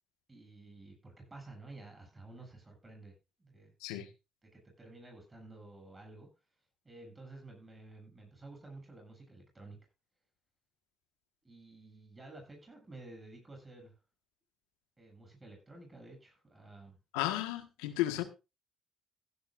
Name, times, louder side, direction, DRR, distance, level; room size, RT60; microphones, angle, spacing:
voice 1, 0.3-3.1 3.4-3.7 4.4-6.3 6.8-9.8 11.4-13.9 15.0-17.0, right 2 dB, 25° right, 7.7 m, -52 dB
voice 2, 17.1-18.2, left 15 dB, 85° left, 1.5 m, -33 dB
17.0 x 12.0 x 2.5 m
hypercardioid pair, 50°, 0 cm